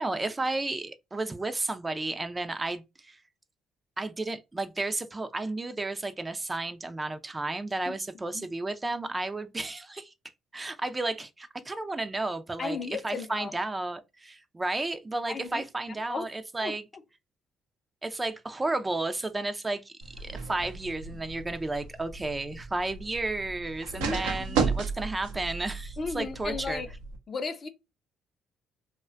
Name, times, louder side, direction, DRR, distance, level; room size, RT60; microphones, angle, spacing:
voice 1, 0.0-3.2 4.0-10.1 10.5-12.8 13.0-16.8 18.0-26.8, right 2 dB, 20° right, 0.3 m, -32 dB
voice 2, 12.6-13.5 15.3-15.6 16.1-16.3 16.6-16.8 24.0-24.8 26.0-26.9 27.3-27.7, left 4 dB, 45° left, 0.5 m, -35 dB
sound 1, 20.0-27.2, right 5 dB, 90° right, 0.5 m, -34 dB
2.4 x 2.1 x 2.4 m
supercardioid pair, 70°, 0 cm